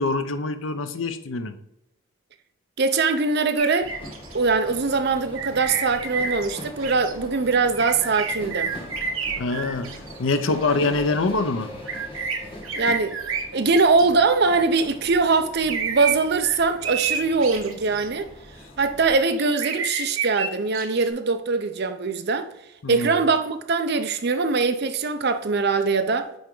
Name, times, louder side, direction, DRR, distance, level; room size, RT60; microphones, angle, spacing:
voice 1, 0.0-1.6 9.4-11.7 22.8-23.1, left 3 dB, 70° left, 0.7 m, -25 dB
voice 2, 2.8-4.0 4.3-8.7 12.8-18.3 18.8-22.5 22.9-26.3, right 4 dB, 50° right, 0.6 m, -22 dB
sound 1, 3.6-4.4 5.4-6.5 6.8-7.1 7.8-10.6 11.9-14.1 15.7-18.1 19.0-21.1, right 5 dB, 80° right, 1.0 m, -30 dB
sound 2, 3.8-19.2, left 1 dB, 25° left, 1.3 m, -41 dB
9.3 x 3.5 x 3.8 m
head